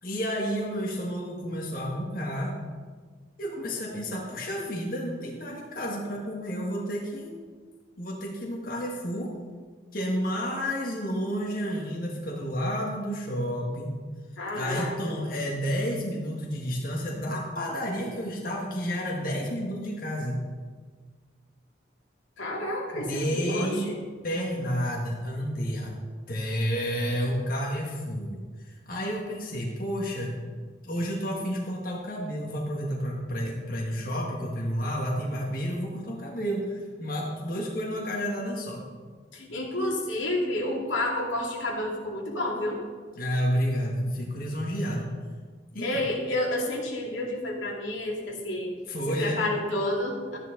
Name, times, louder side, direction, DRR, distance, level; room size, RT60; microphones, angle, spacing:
voice 1, 0.0-2.6 3.4-7.3 8.0-9.4 9.9-13.9 14.5-20.4 22.9-23.8 24.2-25.9 26.3-30.4 30.9-38.8 43.2-45.1 45.7-46.0 48.9-49.4, equal, 45° left, -2 dB, 1.8 m, -30 dB
voice 2, 14.4-15.0 22.4-24.0 39.3-42.8 45.8-48.7 49.2-50.4, left 1 dB, 90° left, -2 dB, 2.5 m, -30 dB
13.5 x 9.9 x 3.9 m, 1.5 s
head